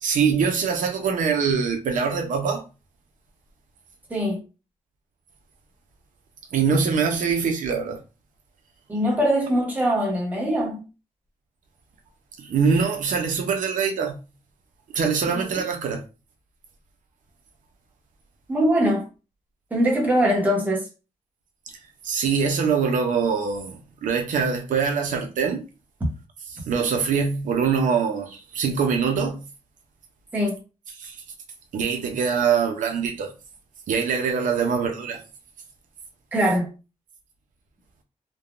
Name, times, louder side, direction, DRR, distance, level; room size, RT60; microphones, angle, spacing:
voice 1, 0.0-2.6 6.5-8.0 12.4-14.2 14.9-16.0 22.0-25.7 26.7-29.4 31.0-31.2 31.7-33.3 33.9-35.2, right 6 dB, 80° right, 0.5 m, -23 dB
voice 2, 8.9-10.8 15.3-15.4 18.5-19.0 19.7-20.9 30.3-30.6 36.3-36.7, equal, 10° right, 0.9 m, -22 dB
3.3 x 2.1 x 2.4 m
wide cardioid pair, 175°, 13 cm